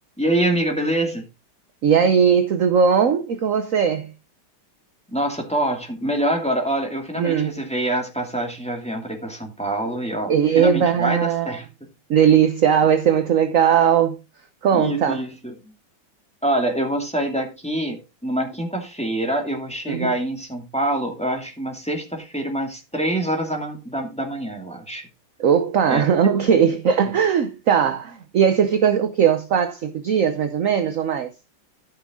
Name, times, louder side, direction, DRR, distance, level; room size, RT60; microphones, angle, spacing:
voice 1, 0.2-1.2 5.1-11.9 14.7-15.7 16.4-25.0 25.9-26.1, right 1 dB, 5° left, 2.1 m, -25 dB
voice 2, 1.8-4.1 7.2-7.6 10.3-11.6 12.1-14.2 14.6-15.2 19.9-20.1 25.4-31.3, right 7 dB, 60° right, 0.9 m, -19 dB
13.5 x 6.1 x 3.7 m
omnidirectional pair, 2.3 m